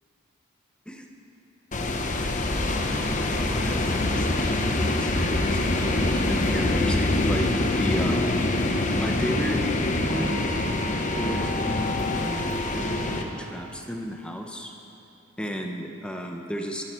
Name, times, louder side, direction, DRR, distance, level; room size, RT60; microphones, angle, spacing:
sound 1, 1.7-13.2, left 2 dB, 40° left, 1.0 m, -25 dB
voice 1, 3.0-7.5 7.8-8.3 9.0-9.6 10.0-10.5 11.1-12.0 12.7-14.7 15.4-16.8, equal, 5° left, 2 dB, 0.9 m, -33 dB
21.5 x 11.0 x 4.5 m, 2.7 s
head